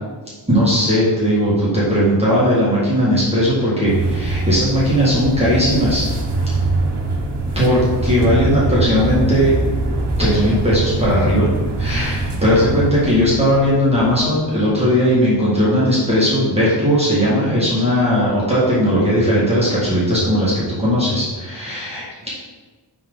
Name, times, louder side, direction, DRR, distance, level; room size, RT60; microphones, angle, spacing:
voice 1, 0.5-6.0 7.5-9.5 10.2-11.5 11.8-22.3, equal, 15° right, -9 dB, 1.7 m, -17 dB
sound 1, 3.9-14.4, right 2 dB, 70° right, 1.1 m, -23 dB
10.5 x 3.7 x 3.8 m, 1.4 s
wide cardioid pair, 145°, 42 cm